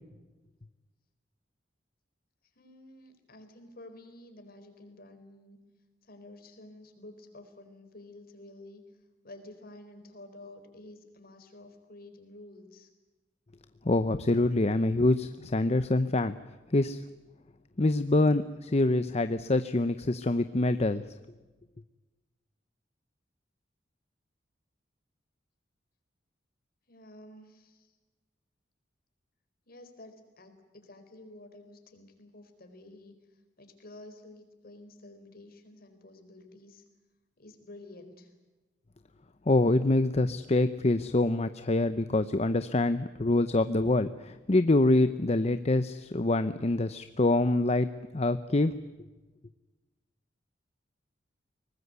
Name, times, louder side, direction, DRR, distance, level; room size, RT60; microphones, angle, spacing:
voice 1, 2.5-5.6 6.0-8.8 9.2-12.9 26.9-28.0 29.7-36.8 37.4-38.3, left 1 dB, 55° left, 7 dB, 4.3 m, -51 dB
voice 2, 13.8-16.4 16.7-17.0 17.8-21.0 39.5-47.9 48.1-48.8, left 2 dB, 35° left, 11 dB, 0.7 m, -25 dB
24.0 x 19.5 x 9.5 m, 1.2 s
head